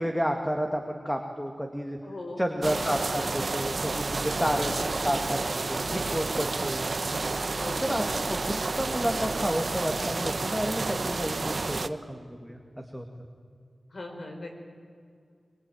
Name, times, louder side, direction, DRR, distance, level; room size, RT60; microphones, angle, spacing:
voice 1, 0.0-2.0 2.4-4.8 5.0-6.8 7.8-12.6 12.9-13.1, equal, 5° left, 3 dB, 2.1 m, -31 dB
voice 2, 2.0-2.8 4.4-5.0 7.6-8.1 13.9-14.5, left 2 dB, 60° left, 3 dB, 5.3 m, -40 dB
sound 1, 2.6-11.9, right 3 dB, 55° right, 1.0 m, -30 dB
24.5 x 24.0 x 9.3 m, 2.2 s
wide cardioid pair, 90°, 0 cm